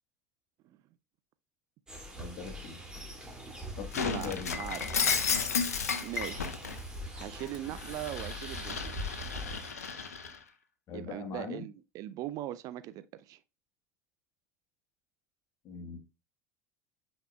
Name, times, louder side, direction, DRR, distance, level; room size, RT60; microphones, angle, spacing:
sound 1, 1.9-9.7, equal, 10° right, 2.8 m, -43 dB
voice 1, 2.2-2.8 3.8-4.6 10.9-11.7 15.6-16.0, left 5 dB, 40° left, 1.6 m, -40 dB
Shatter, 3.9-6.8 7.2-10.4, left 6 dB, 75° left, 0.7 m, -33 dB
voice 2, 4.0-4.9 6.0-6.5 7.1-9.0 10.9-13.4, right 13 dB, 45° right, 0.4 m, -40 dB
9.0 x 5.3 x 2.4 m
figure-of-eight pair, 70°, 8 cm